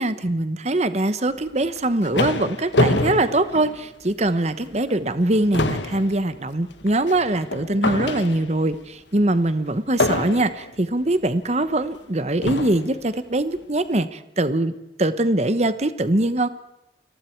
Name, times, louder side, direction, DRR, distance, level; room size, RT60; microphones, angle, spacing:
voice 1, 0.0-14.7 15.0-16.5, right 2 dB, 35° right, 12 dB, 1.1 m, -22 dB
sound 1, 1.6-4.3 4.7-4.9 5.2-8.7 10.0-10.7 11.6-11.7 12.4-12.9, left 2 dB, 80° left, 1.5 m, -26 dB
30.0 x 22.5 x 4.6 m, 0.92 s
head